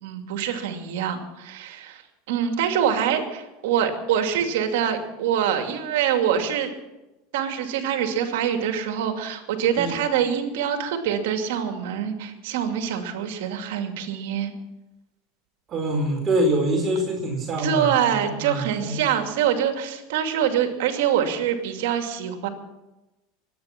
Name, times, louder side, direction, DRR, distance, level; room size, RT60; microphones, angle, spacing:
voice 1, 0.0-2.0 2.3-6.7 7.3-14.5 17.6-22.5, right 9 dB, 75° right, 5 dB, 2.5 m, -25 dB
voice 2, 15.7-19.0, right 1 dB, 35° right, 0 dB, 4.7 m, -25 dB
23.5 x 9.8 x 5.9 m, 1.0 s
hypercardioid pair, 105°, 0 cm